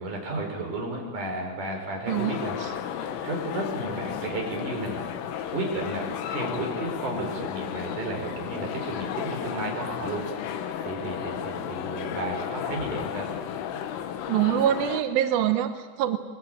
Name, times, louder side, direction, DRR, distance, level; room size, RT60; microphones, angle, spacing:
voice 1, 0.0-2.6 3.2-5.1 5.5-13.3, right 2 dB, 40° right, 1 dB, 6.0 m, -33 dB
sound 1, 2.1-15.0, left 9 dB, 90° left, 4.0 m, -33 dB
voice 2, 14.3-16.2, right 11 dB, 80° right, 8 dB, 2.1 m, -24 dB
26.5 x 21.0 x 8.9 m, 1.4 s
omnidirectional pair, 5.7 m